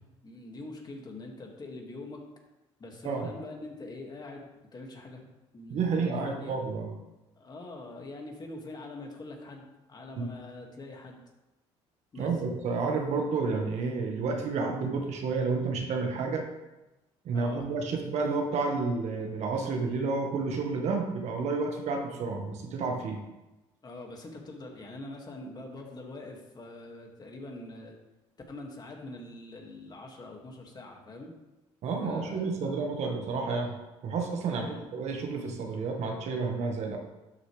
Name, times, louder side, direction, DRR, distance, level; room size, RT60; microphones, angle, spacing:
voice 1, 0.2-2.2 2.8-5.3 5.5-6.6 7.4-11.2 12.1-12.3 17.3-17.7 23.8-27.9 28.5-31.3 32.0-32.9 34.5-34.9, left 2 dB, 35° left, 1 dB, 2.2 m, -44 dB
voice 2, 5.7-6.9 10.2-10.3 12.2-16.4 17.2-23.2 31.8-33.7 34.0-37.0, right 4 dB, 65° right, 2 dB, 1.6 m, -30 dB
12.0 x 6.4 x 3.4 m, 1.0 s
supercardioid pair, 75°, 12 cm